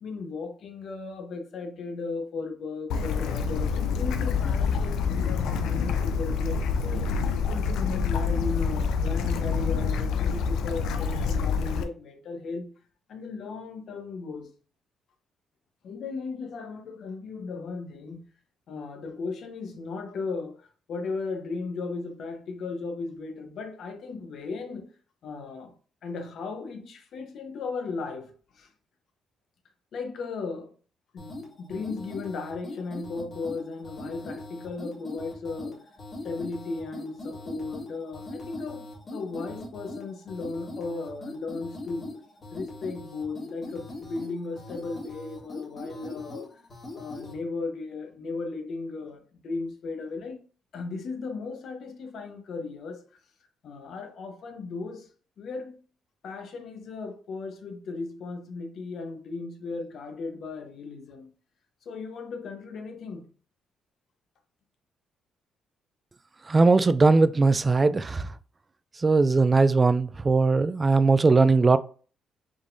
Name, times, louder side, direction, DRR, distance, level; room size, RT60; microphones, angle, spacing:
voice 1, 0.0-12.7 13.1-14.5 15.8-18.3 18.7-24.9 25.2-25.7 26.0-28.7 29.9-30.7 31.1-35.8 36.2-42.1 42.5-46.5 46.9-50.4 50.7-53.1 53.6-55.1 55.4-55.8 56.2-61.3 61.8-63.3, left 4 dB, 65° left, 1.0 m, -36 dB
Bird / Stream, 2.9-11.8, left 5 dB, 85° left, 0.5 m, -27 dB
sound 1, 31.2-47.4, left 2 dB, 45° left, 2.0 m, -41 dB
voice 2, 66.5-68.3 69.0-71.8, right 3 dB, 25° right, 0.4 m, -20 dB
5.1 x 3.7 x 2.6 m
cardioid pair, 90°, 0 cm